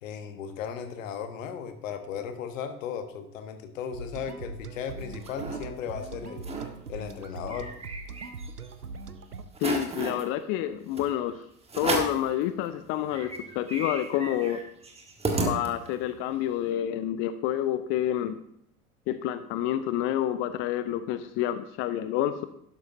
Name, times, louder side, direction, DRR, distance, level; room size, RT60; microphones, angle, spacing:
voice 1, 0.0-6.4 6.9-7.7, left 7 dB, 60° left, 8 dB, 1.3 m, -36 dB
sound 1, 3.9-9.4, right 4 dB, 90° right, 0.7 m, -41 dB
sound 2, 4.8-5.6 6.0-6.1 6.3-6.7 7.1-8.7 9.1-9.2 9.5-10.2 11.0-11.1 11.7-12.3 12.7-12.8 13.1-16.1, right 3 dB, 15° right, 1.5 m, -33 dB
voice 2, 9.6-11.4 11.8-14.6 15.4-18.4 19.1-22.5, left 12 dB, 30° left, 13 dB, 0.4 m, -28 dB
11.5 x 11.5 x 2.7 m, 0.73 s
figure-of-eight pair, 80°, 44 cm